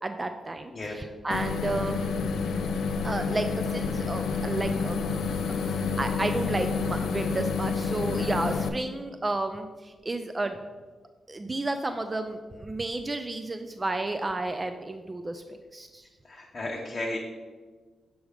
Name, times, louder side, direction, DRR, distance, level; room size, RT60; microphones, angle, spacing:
voice 1, 0.0-2.3 3.0-5.1 5.6-10.6 11.3-16.0, right 2 dB, 20° right, 7 dB, 0.3 m, -32 dB
sound 1, 1.3-8.7, left 5 dB, 85° left, 0.4 m, -29 dB
voice 2, 16.3-17.2, left 2 dB, 30° left, -2 dB, 0.7 m, -33 dB
6.4 x 3.4 x 4.8 m, 1.4 s
cardioid pair, 95°, 0 cm